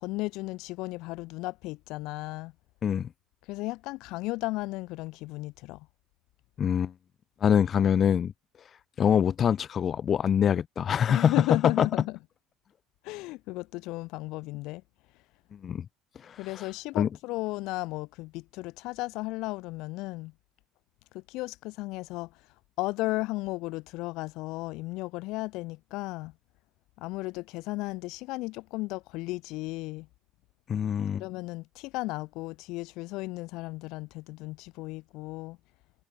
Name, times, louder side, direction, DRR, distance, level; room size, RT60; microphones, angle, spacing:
voice 1, 0.0-2.5 3.4-5.9 11.1-12.2 13.0-14.8 16.4-20.3 21.1-22.4 22.8-26.3 27.0-30.1 31.2-35.6, left 21 dB, 70° left, 0.8 m, -34 dB
voice 2, 6.6-6.9 7.4-8.3 9.0-11.3 11.8-11.9 15.6-15.8 16.3-16.4 17.0-17.1 30.7-31.2, left 8 dB, 45° left, 0.7 m, -24 dB
supercardioid pair, 90°, 0 cm